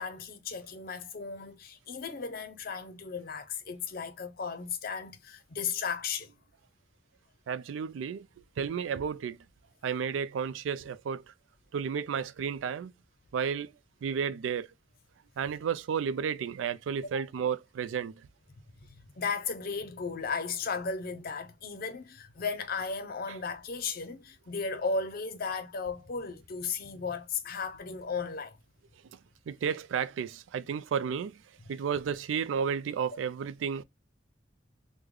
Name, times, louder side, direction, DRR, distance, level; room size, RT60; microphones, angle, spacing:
voice 1, 0.0-6.3 17.1-17.2 18.9-28.6, left 5 dB, 50° left, 0.6 m, -35 dB
voice 2, 7.5-8.3 8.6-9.4 9.8-11.2 11.7-12.9 13.3-13.7 14.0-14.7 15.4-18.3 29.5-31.4 31.7-33.8, right 7 dB, 90° right, 0.3 m, -32 dB
3.6 x 2.1 x 3.1 m
head